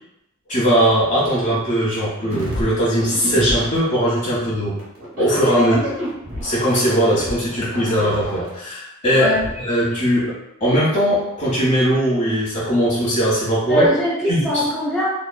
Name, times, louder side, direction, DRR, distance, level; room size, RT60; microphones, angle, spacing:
voice 1, 0.5-4.8 5.1-5.8 6.4-9.3 9.6-10.3 10.6-13.9 14.3-14.6, equal, 35° left, -8 dB, 1.1 m, -19 dB
sound 1, 2.3-3.8 4.8-8.6 9.3-9.5, right 1 dB, 70° right, 1.3 m, -29 dB
voice 2, 5.5-5.9 9.1-9.4 13.7-15.1, equal, ahead, -9 dB, 0.8 m, -21 dB
2.9 x 2.3 x 2.2 m, 0.85 s
head